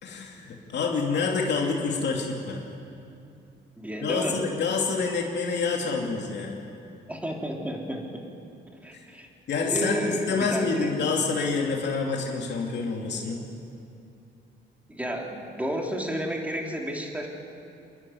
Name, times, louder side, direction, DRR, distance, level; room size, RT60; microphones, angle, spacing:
voice 1, 0.0-2.6 4.0-6.5 8.9-9.0 9.5-13.4, left 4 dB, 60° left, 0 dB, 2.6 m, -27 dB
voice 2, 3.8-4.4 7.1-8.2 8.8-9.3 9.7-11.1 14.9-17.3, equal, 5° right, 0 dB, 3.4 m, -32 dB
27.0 x 11.0 x 9.5 m, 2.6 s
cardioid pair, 90°, 20 cm